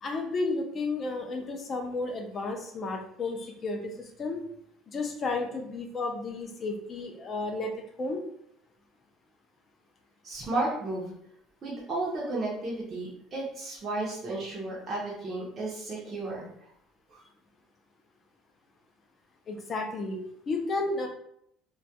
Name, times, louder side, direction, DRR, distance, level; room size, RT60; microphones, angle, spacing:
voice 1, 0.0-4.4 4.9-7.7 8.0-8.2 19.5-20.2 20.5-21.1, left 3 dB, 25° left, 3 dB, 0.4 m, -32 dB
voice 2, 10.2-11.1 11.6-16.5 17.1-17.2, right 2 dB, 25° right, -5 dB, 0.5 m, -33 dB
2.2 x 2.1 x 2.7 m, 0.72 s
cardioid pair, 170°, 0 cm